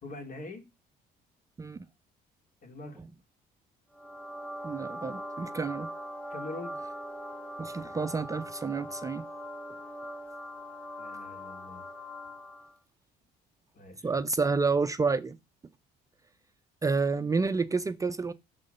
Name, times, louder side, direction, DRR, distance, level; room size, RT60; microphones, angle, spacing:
voice 1, 0.0-0.6 2.6-3.0 6.3-6.8 11.0-11.9 13.7-14.1, left 2 dB, 50° left, 2.5 m, -43 dB
sound 1, 3.9-12.8, equal, 5° left, 0.9 m, -41 dB
voice 2, 4.6-5.9 7.6-9.2 14.0-15.4 16.8-18.3, right 4 dB, 20° right, 0.5 m, -29 dB
10.5 x 3.8 x 6.6 m
cardioid pair, 110°, 17 cm